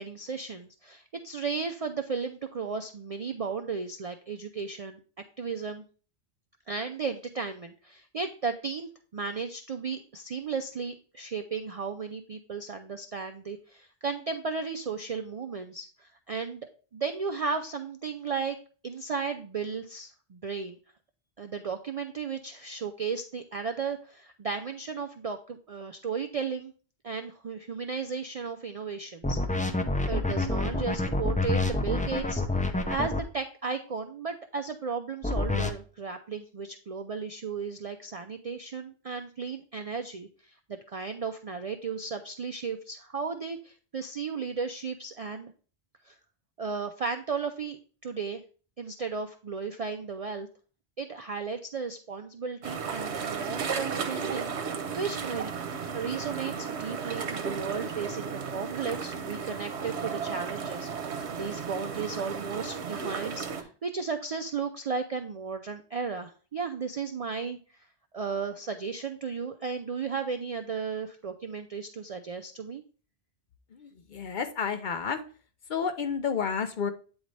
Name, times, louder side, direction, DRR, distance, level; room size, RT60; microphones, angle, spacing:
voice 1, 0.0-5.0 5.4-5.8 6.7-18.6 18.8-20.8 21.4-26.7 27.0-29.7 30.1-45.5 46.0-46.1 46.6-48.4 48.8-50.5 51.0-55.5 55.9-67.9 68.1-72.8, right 5 dB, 55° right, 5 dB, 0.4 m, -35 dB
sound 1, 29.2-33.2 35.2-35.7, left 2 dB, 10° left, 0.3 m, -27 dB
sound 2, 52.6-63.6, right 6 dB, 80° right, 1.1 m, -34 dB
voice 2, 73.7-75.2 75.7-76.9, left 6 dB, 55° left, 7 dB, 0.6 m, -30 dB
8.7 x 4.0 x 3.2 m, 0.40 s
omnidirectional pair, 1.1 m